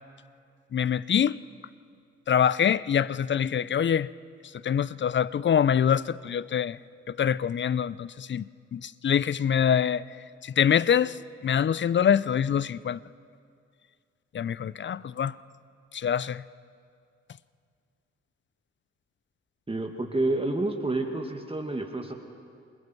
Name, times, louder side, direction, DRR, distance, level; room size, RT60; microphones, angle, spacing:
voice 1, 0.7-1.4 2.3-4.1 4.6-6.8 7.1-8.4 8.7-10.0 10.4-11.2 11.4-13.0 14.3-15.3 15.9-16.4, left 8 dB, 40° left, 0.6 m, -24 dB
voice 2, 19.7-22.1, right 2 dB, 20° right, 2.1 m, -29 dB
28.0 x 21.0 x 4.6 m
hypercardioid pair, 45°, 30 cm